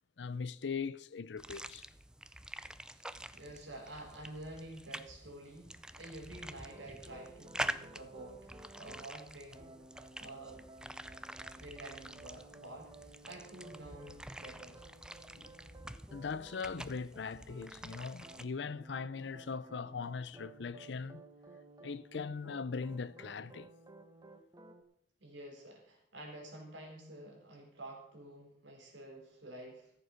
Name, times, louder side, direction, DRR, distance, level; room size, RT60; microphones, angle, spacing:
voice 1, 0.2-1.9 15.3-15.5 16.1-21.2 21.8-23.7, left 5 dB, 70° left, 0.5 m, -40 dB
sound 1, 1.4-18.4, right 1 dB, 5° right, 0.4 m, -47 dB
voice 2, 3.3-9.9 10.2-10.7 11.5-14.8 25.2-29.9, right 1 dB, 85° right, 4.1 m, -49 dB
sound 2, 6.7-9.1 9.5-24.8, right 2 dB, 20° right, 1.0 m, -56 dB
14.0 x 7.7 x 6.5 m
head